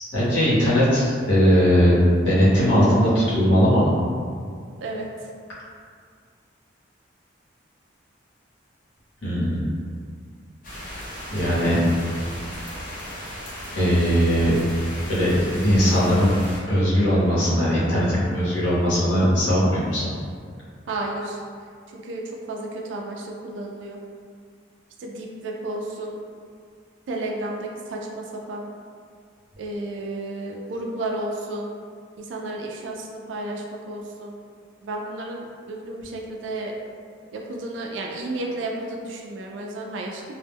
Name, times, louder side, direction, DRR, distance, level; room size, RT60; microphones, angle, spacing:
voice 1, 0.1-3.9 9.2-9.7 11.3-11.8 13.8-14.6 15.1-16.3 16.7-20.0, equal, 80° left, -10 dB, 0.9 m, -19 dB
sound 1, 10.6-16.6, equal, 45° left, 0.7 m, -36 dB
voice 2, 20.9-21.4 21.9-24.0 25.0-26.2 27.1-28.7 29.6-31.7 32.2-34.3 34.8-36.7 37.3-40.2, right 2 dB, 75° right, 0 dB, 0.3 m, -32 dB
2.1 x 2.1 x 3.4 m, 2.1 s
head